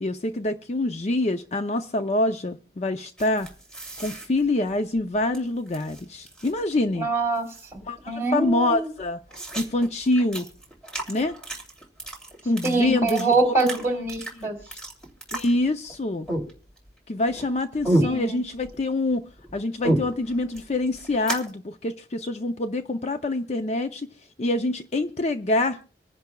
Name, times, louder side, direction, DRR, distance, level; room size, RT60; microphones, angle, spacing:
voice 1, 0.0-3.5 4.0-7.1 7.8-9.2 9.6-10.5 11.1-11.4 12.5-13.5 14.4-14.8 15.3-16.3 17.1-19.2 19.5-24.1 24.4-25.8, left 2 dB, 40° left, 0.5 m, -26 dB
sound 1, 3.2-5.4 5.7-6.7 7.0-7.1 7.3-8.0 8.4-8.5 8.8-16.0 16.3-17.0 17.3-18.8 19.1-21.5, right 1 dB, 5° left, 2.7 m, -31 dB
voice 2, 6.9-7.5 8.1-8.9 12.6-14.6 18.0-18.4, right 3 dB, 15° right, 3.2 m, -24 dB
26.0 x 10.5 x 2.3 m
head